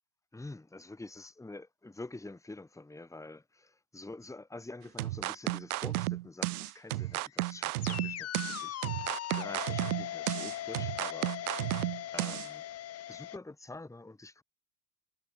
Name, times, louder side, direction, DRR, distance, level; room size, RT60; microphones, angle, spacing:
voice 1, 0.3-12.6 13.1-14.4, left 2 dB, 5° left, 3.1 m, -47 dB
sound 1, 5.0-12.5, right 17 dB, 90° right, 0.5 m, -33 dB
sound 2, 7.0-13.4, left 12 dB, 35° left, 1.5 m, -40 dB
hypercardioid pair, 100°, 42 cm